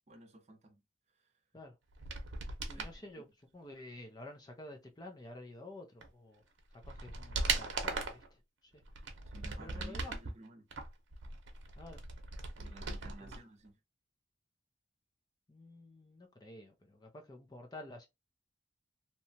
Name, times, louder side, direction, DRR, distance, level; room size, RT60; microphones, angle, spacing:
voice 1, 0.1-0.8 1.2-1.3 2.7-3.0 9.3-10.7 12.6-13.7, right 2 dB, 35° right, 0.7 m, -54 dB
sound 1, 1.9-3.0 6.0-6.1 6.6-8.3 8.8-10.3 10.7-13.4 13.6-13.7, right 4 dB, 85° right, 0.7 m, -39 dB
voice 2, 2.7-3.3 3.5-6.4 6.8-8.8 9.6-10.1 11.8-12.0 13.2-13.4 15.5-18.1, left 2 dB, 20° left, 0.4 m, -50 dB
2.8 x 2.2 x 2.7 m
head